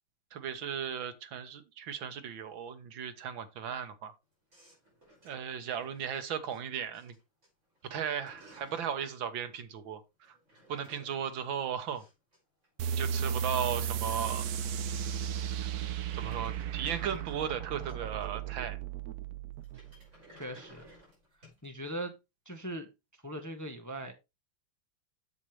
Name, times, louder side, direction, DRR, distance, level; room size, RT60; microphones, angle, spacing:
voice 1, 0.3-4.1 5.2-7.2 7.9-10.4 10.7-12.0 12.9-14.5 16.1-18.8, right 8 dB, 85° right, 1.9 m, -36 dB
sound 1, 4.5-6.6 6.9-7.5 7.8-8.9 10.2-12.4 12.6-12.7 13.0-13.1 13.3-15.1 15.4-18.5 19.6-21.7, equal, 35° right, 6.0 m, -57 dB
sound 2, 12.8-19.9, right 8 dB, 65° right, 1.1 m, -35 dB
voice 2, 20.3-20.9 21.6-22.2 22.4-24.1, right 1 dB, 10° left, 0.9 m, -40 dB
8.3 x 7.5 x 3.3 m
omnidirectional pair, 2.1 m